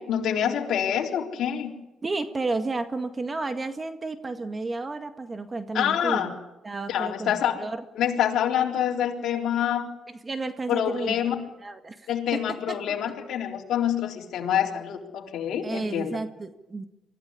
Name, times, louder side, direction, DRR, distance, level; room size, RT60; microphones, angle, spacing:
voice 1, 0.0-1.7 5.7-6.3 6.9-7.6 8.0-9.9 10.7-11.3 12.1-16.2, left 9 dB, 75° left, 1 dB, 3.8 m, -26 dB
voice 2, 2.0-6.4 6.6-7.8 10.1-11.2 11.6-13.0 15.6-16.8, right 3 dB, 30° right, 8 dB, 1.8 m, -32 dB
24.5 x 15.0 x 9.9 m, 0.99 s
cardioid pair, 90°, 0 cm